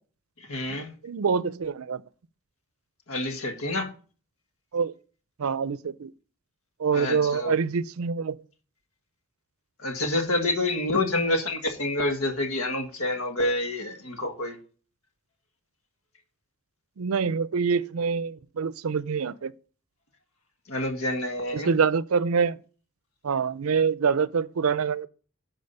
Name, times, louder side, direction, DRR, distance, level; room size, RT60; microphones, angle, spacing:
voice 1, 0.5-0.9 3.1-3.9 6.9-7.5 9.8-14.6 20.7-21.7, left 2 dB, 80° left, 1.8 m, -28 dB
voice 2, 1.0-2.0 4.7-4.9 5.4-6.1 6.8-8.3 17.0-19.5 21.5-22.6 23.2-25.1, right 6 dB, 80° right, 0.5 m, -25 dB
11.5 x 5.0 x 5.5 m
head